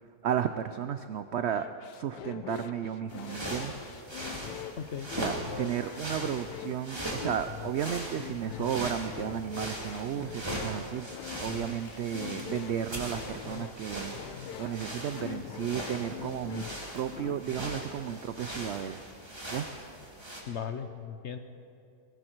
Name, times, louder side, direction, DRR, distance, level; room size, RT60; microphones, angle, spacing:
voice 1, 0.2-1.7 1.9-3.8 4.2-4.5 5.1-11.1 11.4-16.6 16.9-19.0 19.5-19.7, right 9 dB, 85° right, 10 dB, 0.5 m, -33 dB
sound 1, 1.5-17.6, left 10 dB, 90° left, 1.2 m, -43 dB
sound 2, 3.1-20.4, equal, 15° right, 2.2 m, -40 dB
voice 2, 4.8-5.1 20.5-21.4, left 7 dB, 55° left, 8 dB, 0.9 m, -37 dB
18.5 x 16.0 x 4.6 m, 2.5 s
omnidirectional pair, 1.7 m